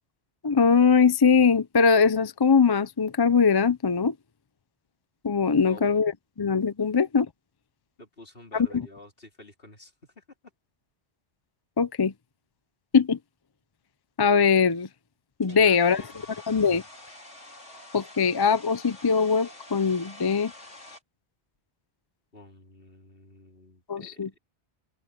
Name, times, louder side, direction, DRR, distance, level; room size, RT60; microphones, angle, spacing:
voice 1, 0.4-4.1 5.2-6.1 6.4-7.3 8.7-8.8 11.8-12.1 12.9-13.2 14.2-14.9 15.4-16.0 16.5-16.8 17.9-20.5 23.9-24.4, left 5 dB, 30° left, 0.5 m, -21 dB
voice 2, 5.5-5.8 8.0-10.2 15.5-16.3 22.3-24.2, left 2 dB, 55° left, 4.3 m, -49 dB
Domestic sounds home sounds, 15.4-21.0, left 2 dB, 90° left, 4.7 m, -47 dB
open air
omnidirectional pair, 1.2 m